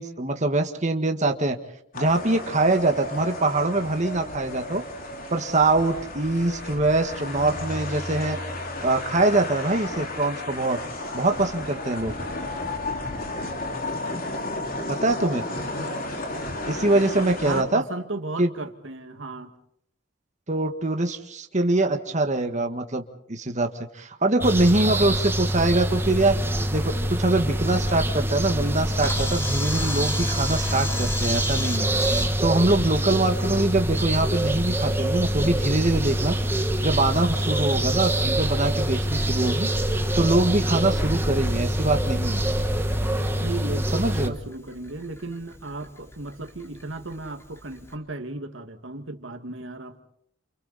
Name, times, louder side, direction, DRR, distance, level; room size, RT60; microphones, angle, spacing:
voice 1, 0.0-1.6 1.9-4.8 5.3-8.4 8.8-10.8 11.1-12.1 14.9-15.4 16.7-17.8 18.4-18.5 20.5-23.0 23.3-23.7 23.9-26.4 26.7-31.9 32.4-36.4 36.8-39.7 40.2-42.4 43.9-44.3, right 2 dB, 40° right, 1.7 m, -23 dB
sound 1, 1.9-17.6, left 2 dB, 50° left, 4.5 m, -33 dB
voice 2, 17.4-19.5 33.4-33.7 43.4-50.0, right 2 dB, 85° right, 2.1 m, -35 dB
sound 2, 24.4-44.3, right 1 dB, 10° right, 1.6 m, -25 dB
Camera, 28.6-47.9, left 1 dB, 15° left, 4.3 m, -38 dB
30.0 x 29.0 x 4.2 m
head